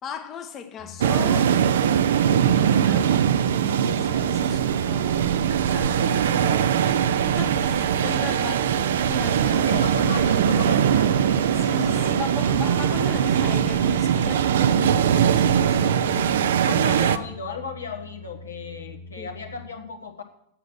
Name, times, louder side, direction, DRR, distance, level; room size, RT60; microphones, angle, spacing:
voice 1, 0.0-1.6 1.9-3.2 3.6-5.2 5.7-9.8 11.5-16.5 19.2-19.3, left 7 dB, 30° left, 0.9 m, -38 dB
sound 1, 0.8-19.7, left 2 dB, 50° left, 2.2 m, -43 dB
sound 2, 1.0-17.2, right 9 dB, 60° right, 0.5 m, -21 dB
sound 3, 4.0-16.4, equal, 5° left, 1.1 m, -42 dB
voice 2, 5.9-6.5 9.6-11.3 14.8-15.0 16.6-20.2, left 5 dB, 75° left, 1.3 m, -35 dB
10.0 x 7.3 x 6.0 m
figure-of-eight pair, 90°, 0 cm